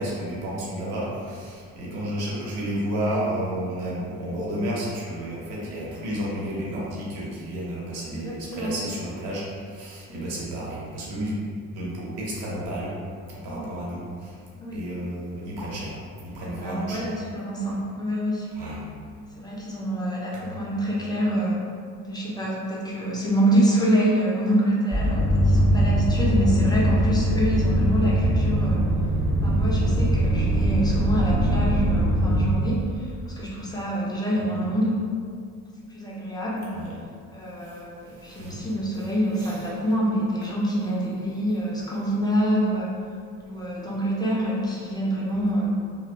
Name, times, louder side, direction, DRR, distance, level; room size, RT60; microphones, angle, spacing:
voice 1, 0.0-11.3 11.7-12.9 13.3-14.4 14.7-17.1 18.5-18.8 20.3-20.6 34.5-34.6 36.7-36.9 37.6-38.6 39.4-39.5, right 1 dB, 60° right, -6 dB, 0.9 m, -32 dB
voice 2, 8.1-8.7 10.1-10.3 13.5-13.7 14.6-14.8 16.5-18.5 19.4-21.6 22.0-28.8 29.4-35.0 35.9-36.7 37.3-42.9 43.4-45.7, right 1 dB, 10° left, -5 dB, 0.3 m, -26 dB
sound 1, 24.9-32.5, equal, 25° right, 0.7 m, -21 dB
2.7 x 2.0 x 2.4 m, 2.2 s
figure-of-eight pair, 55°, 45 cm